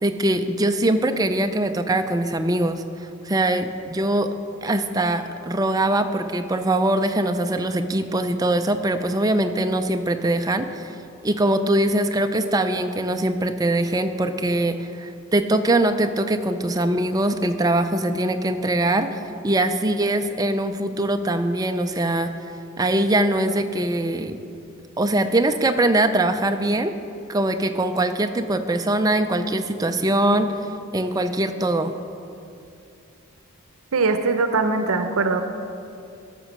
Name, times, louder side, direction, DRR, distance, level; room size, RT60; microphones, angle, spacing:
voice 1, 0.0-2.8 3.3-4.3 4.6-10.9 11.2-22.3 22.8-24.4 25.0-26.9 27.3-31.9, right 1 dB, 15° right, 7 dB, 0.4 m, -22 dB
voice 2, 33.9-35.4, right 3 dB, 75° right, 7 dB, 0.7 m, -21 dB
13.5 x 6.5 x 6.0 m, 2.6 s
head